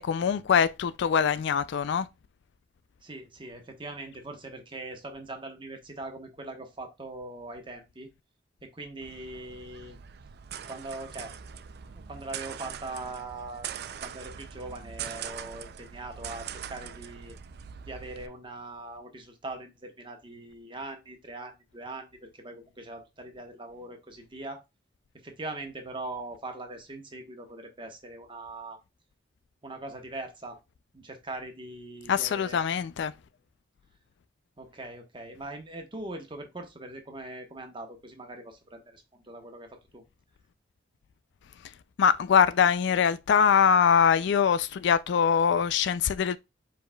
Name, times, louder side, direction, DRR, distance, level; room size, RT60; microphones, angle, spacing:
voice 1, 0.0-2.1 32.1-33.1 42.0-46.4, left 7 dB, 65° left, 0.3 m, -23 dB
voice 2, 3.0-8.1 8.6-10.0 10.7-11.3 11.9-13.7 14.0-17.3 17.8-24.6 25.2-28.8 29.6-30.6 30.9-32.6 34.6-40.0, right 2 dB, 25° right, 1.2 m, -41 dB
sound 1, 9.0-18.3, right 8 dB, 60° right, 0.4 m, -42 dB
4.8 x 4.7 x 2.3 m
head